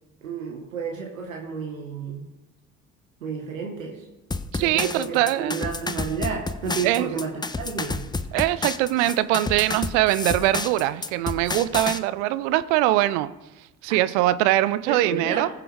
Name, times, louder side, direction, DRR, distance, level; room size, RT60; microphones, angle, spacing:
voice 1, 0.2-2.3 3.2-4.1 4.6-8.1 13.9-14.0 14.9-15.5, right 5 dB, 75° right, 1 dB, 1.5 m, -31 dB
sound 1, 4.3-12.0, left 3 dB, 10° left, 0.6 m, -30 dB
voice 2, 4.5-5.7 6.8-7.1 8.3-13.3 13.8-15.5, right 15 dB, 60° right, 15 dB, 0.7 m, -22 dB
19.5 x 6.9 x 3.5 m, 1.0 s
figure-of-eight pair, 50°, 40 cm